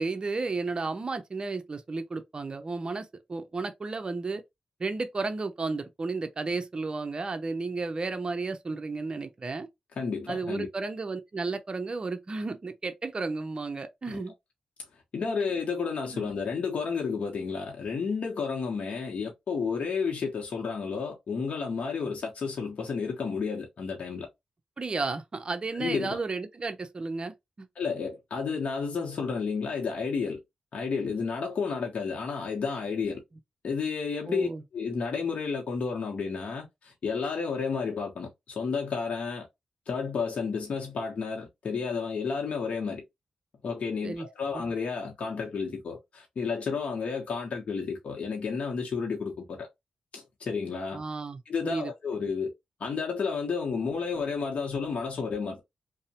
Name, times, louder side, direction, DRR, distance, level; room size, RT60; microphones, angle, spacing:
voice 1, 0.0-4.4 4.8-9.7 10.3-14.3 16.1-16.3 24.8-27.7 34.3-34.6 44.0-44.3 50.9-51.9, right 3 dB, 40° right, 0.5 m, -33 dB
voice 2, 10.0-10.7 14.1-14.2 15.1-24.3 25.7-26.2 27.8-30.4 30.7-33.2 33.6-34.5 34.7-39.5 39.9-43.0 43.6-49.7 50.1-51.0 51.5-52.5 52.8-55.6, left 5 dB, 65° left, 0.7 m, -31 dB
2.6 x 2.0 x 2.8 m
cardioid pair, 55°, 2 cm